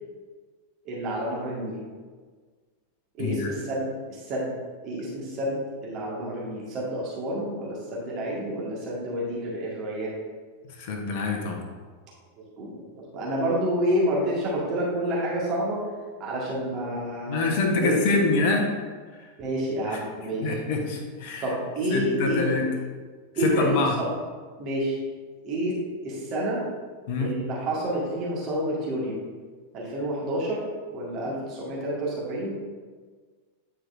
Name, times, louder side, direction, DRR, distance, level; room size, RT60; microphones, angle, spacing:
voice 1, 0.8-1.8 3.2-4.5 4.8-10.2 12.4-15.8 16.2-18.3 19.4-20.5 21.4-22.5 23.3-24.1 24.6-25.0 25.4-26.6 27.2-29.2 29.7-30.6 30.9-32.5, right 1 dB, 35° right, -6 dB, 1.7 m, -29 dB
voice 2, 10.7-11.6 17.3-18.7 19.9-20.0 20.4-21.5 21.9-22.7 23.4-24.0 27.1-27.3, left 3 dB, 50° left, 2 dB, 1.1 m, -26 dB
9.1 x 4.7 x 2.6 m, 1.5 s
figure-of-eight pair, 90°, 0 cm